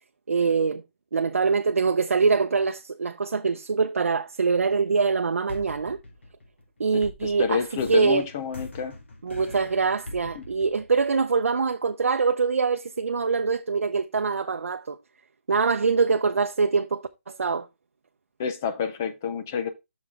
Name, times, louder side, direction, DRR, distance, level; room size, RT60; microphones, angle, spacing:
voice 1, 0.3-0.8 1.1-6.0 6.8-8.3 9.2-15.0 15.5-17.7, right 5 dB, 90° right, 0.6 m, -24 dB
sound 1, 4.5-5.1 5.5-11.4, left 2 dB, 60° left, 2.0 m, -42 dB
voice 2, 7.2-9.0 10.4-10.5 18.4-19.7, left 6 dB, 10° left, 0.3 m, -28 dB
6.2 x 5.9 x 3.5 m
hypercardioid pair, 180°, 7 cm